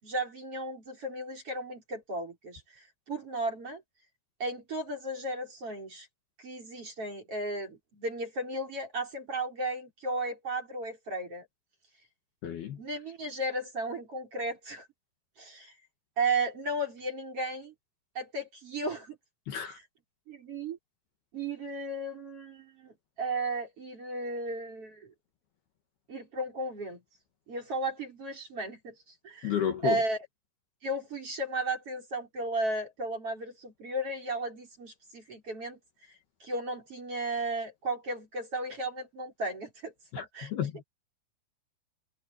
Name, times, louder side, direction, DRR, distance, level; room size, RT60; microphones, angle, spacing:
voice 1, 0.0-3.8 4.4-6.1 6.4-11.5 12.8-14.9 15.4-15.7 16.2-17.7 18.2-19.2 20.3-20.8 21.3-25.1 26.1-27.0 27.5-28.9 29.2-29.6 29.8-30.2 30.8-35.8 36.4-40.5, right 2 dB, 30° right, 5.4 m, -34 dB
voice 2, 12.4-12.8 19.5-19.8 29.4-30.0 40.1-40.8, left 9 dB, 60° left, 3.5 m, -32 dB
omnidirectional pair, 5.8 m